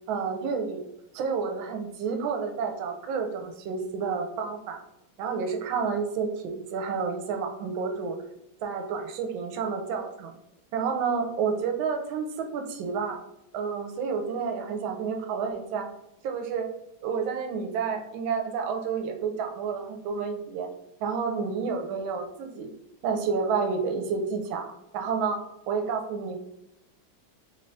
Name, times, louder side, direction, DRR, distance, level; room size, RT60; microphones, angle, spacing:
voice 1, 0.1-0.9 1.1-4.8 5.2-8.2 8.6-10.3 10.7-13.2 13.5-15.9 16.2-16.7 17.0-20.7 21.0-22.7 23.0-24.7 24.9-25.4 25.7-26.4, right 5 dB, 75° right, 4 dB, 1.3 m, -30 dB
3.6 x 3.2 x 2.6 m, 0.85 s
omnidirectional pair, 2.2 m